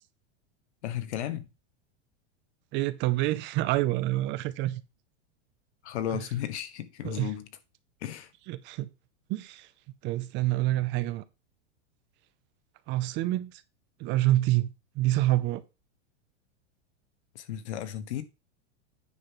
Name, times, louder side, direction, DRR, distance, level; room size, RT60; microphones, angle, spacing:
voice 1, 0.8-1.5 5.8-7.5 8.0-8.3 17.3-18.2, left 11 dB, 80° left, 1.4 m, -34 dB
voice 2, 2.7-4.8 6.1-6.2 7.0-7.3 8.5-8.9 9.3-9.7 10.0-11.2 12.9-13.6 14.0-15.6, right 16 dB, 35° right, 0.6 m, -27 dB
9.4 x 3.8 x 5.8 m
supercardioid pair, 140°, 34 cm